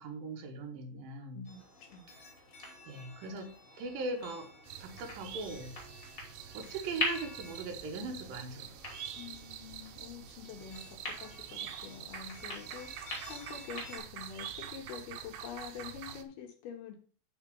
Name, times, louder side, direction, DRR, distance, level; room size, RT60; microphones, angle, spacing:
voice 1, 0.0-1.4 2.9-4.5 4.8-5.7 6.5-8.8, right 3 dB, 70° right, 2 dB, 2.2 m, -40 dB
voice 2, 1.3-2.1 9.2-16.9, left 7 dB, 70° left, 2 dB, 2.6 m, -46 dB
sound 1, 1.4-14.0, left 2 dB, 35° left, 2.2 m, -44 dB
sound 2, 4.7-16.2, right 10 dB, 85° right, 2.4 m, -46 dB
8.9 x 4.4 x 5.3 m, 0.41 s
omnidirectional pair, 5.7 m